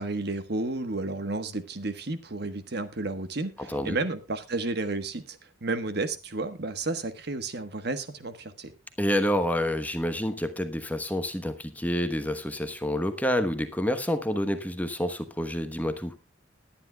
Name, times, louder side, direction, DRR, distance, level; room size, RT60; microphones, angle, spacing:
voice 1, 0.0-8.7, right 2 dB, 55° right, 1.3 m, -32 dB
voice 2, 9.0-16.1, equal, 10° left, 1.1 m, -28 dB
20.5 x 10.0 x 2.3 m
head